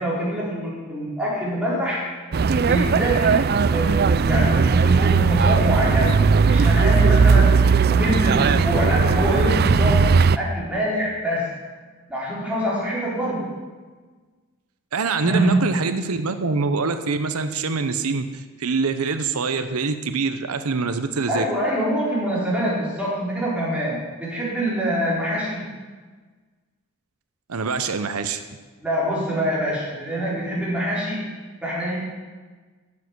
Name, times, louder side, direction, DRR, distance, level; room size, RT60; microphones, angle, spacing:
voice 1, 0.0-2.0 2.7-6.2 6.5-7.5 7.9-10.1 10.4-11.5 12.1-13.5 15.2-15.7 21.3-25.6 28.8-31.2 31.6-32.0, equal, 5° right, -7 dB, 4.2 m, -25 dB
sound 1, 2.3-10.4, right 5 dB, 45° right, 0.4 m, -17 dB
voice 2, 14.9-21.5 27.5-28.4, right 4 dB, 90° right, 9 dB, 0.8 m, -25 dB
10.5 x 7.5 x 9.6 m, 1.4 s
head